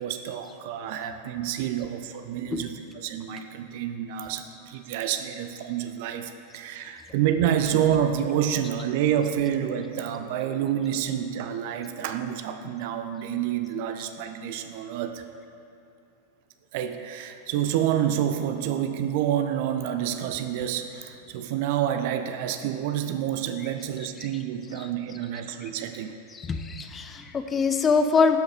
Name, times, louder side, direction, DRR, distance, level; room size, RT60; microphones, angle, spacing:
voice 1, 0.0-15.2 16.7-26.2, right 10 dB, 50° right, 8 dB, 0.4 m, -28 dB
voice 2, 26.3-28.4, left 5 dB, 20° left, 7 dB, 0.5 m, -23 dB
11.5 x 5.4 x 3.6 m, 2.7 s
figure-of-eight pair, 90°, 0 cm